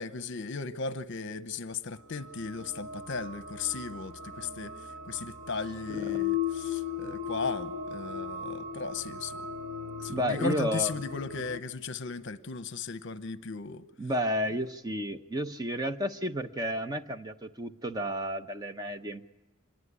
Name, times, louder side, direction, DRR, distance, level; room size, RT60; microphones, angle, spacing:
voice 1, 0.0-4.7 5.1-9.4 10.0-13.9, left 4 dB, 55° left, 0.9 m, -36 dB
sound 1, 2.1-11.6, left 7 dB, 40° right, 1.2 m, -37 dB
voice 2, 5.9-6.2 10.1-10.9 14.0-19.3, equal, 15° right, 0.8 m, -32 dB
26.0 x 21.5 x 9.7 m
head